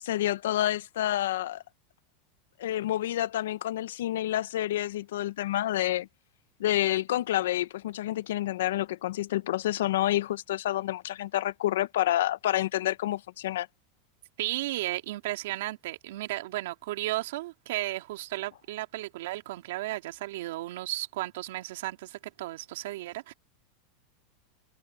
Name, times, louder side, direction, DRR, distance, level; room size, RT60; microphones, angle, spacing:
voice 1, 0.0-1.6 2.6-6.1 6.6-13.7, left 13 dB, 85° left, 0.8 m, -28 dB
voice 2, 14.4-23.3, right 17 dB, 75° right, 3.0 m, -34 dB
supercardioid pair, 125°, 0 cm